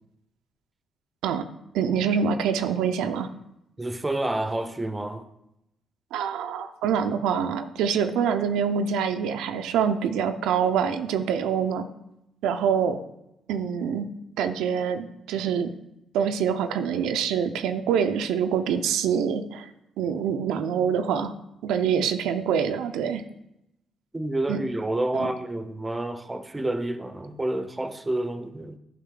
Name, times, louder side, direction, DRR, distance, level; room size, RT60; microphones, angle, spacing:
voice 1, 1.7-3.3 6.1-11.9 12.4-13.0 13.5-14.1 14.4-15.7 16.1-19.7 20.0-21.4 21.6-23.2 24.5-24.6 25.1-25.3, right 7 dB, 90° right, 0.5 m, -25 dB
voice 2, 3.8-5.3 24.1-28.8, right 1 dB, 15° right, 0.7 m, -29 dB
10.0 x 5.1 x 3.8 m
cardioid pair, 90°, 0 cm